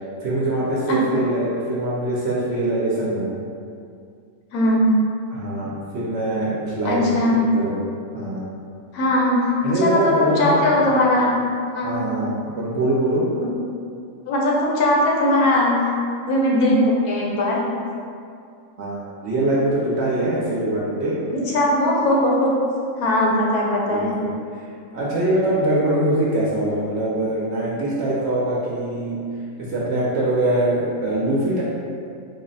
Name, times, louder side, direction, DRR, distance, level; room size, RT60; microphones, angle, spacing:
voice 1, 0.2-3.3 5.3-7.8 8.1-8.4 9.6-10.6 11.8-13.2 18.8-21.1 23.9-24.3 24.6-24.7 24.9-29.2 29.7-31.6, right 1 dB, 60° right, -6 dB, 0.7 m, -23 dB
voice 2, 0.9-1.2 4.5-4.9 6.8-7.4 8.9-11.3 11.7-12.1 14.3-15.9 16.3-17.8 21.3-22.5 23.0-24.2, left 1 dB, 85° left, -3 dB, 1.2 m, -19 dB
3.8 x 2.1 x 3.9 m, 2.4 s
omnidirectional pair, 1.6 m